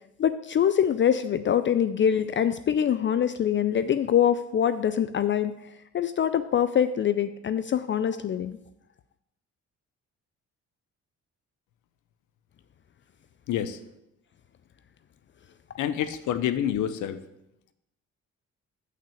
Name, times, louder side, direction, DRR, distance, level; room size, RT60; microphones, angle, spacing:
voice 1, 0.2-5.5 5.9-8.6, left 9 dB, 40° left, 12 dB, 0.4 m, -24 dB
voice 2, 13.5-13.8 15.8-17.2, left 10 dB, 75° left, 12 dB, 0.7 m, -27 dB
5.9 x 5.9 x 7.0 m, 0.87 s
cardioid pair, 90°, 30 cm